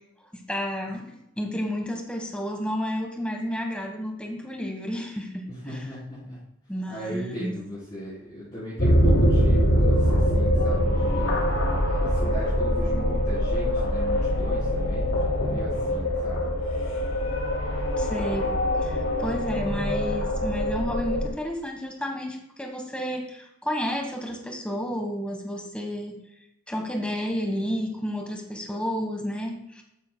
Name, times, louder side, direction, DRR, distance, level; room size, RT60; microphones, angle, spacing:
voice 1, 0.3-1.1 1.4-5.9 6.7-7.5 18.0-18.5 18.8-26.2 26.7-29.8, equal, 5° left, 2 dB, 1.4 m, -31 dB
voice 2, 5.5-6.4 6.9-11.3 11.8-16.5, equal, 25° left, -13 dB, 3.7 m, -37 dB
sound 1, 8.8-21.3, equal, 65° left, 2.3 m, -23 dB
12.5 x 9.5 x 2.3 m, 0.82 s
head